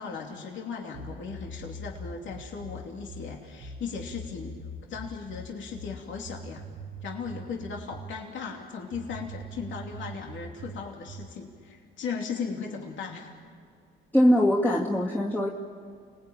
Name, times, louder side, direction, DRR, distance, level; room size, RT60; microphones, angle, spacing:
voice 1, 0.0-4.6 4.9-6.6 7.0-13.3, left 5 dB, 70° left, 0 dB, 2.9 m, -37 dB
sound 1, 0.9-8.2 8.9-11.4, right 1 dB, 70° right, 1.6 m, -42 dB
voice 2, 14.1-15.5, equal, 10° left, -5 dB, 2.3 m, -22 dB
29.5 x 20.0 x 9.0 m, 2.2 s
cardioid pair, 90°, 20 cm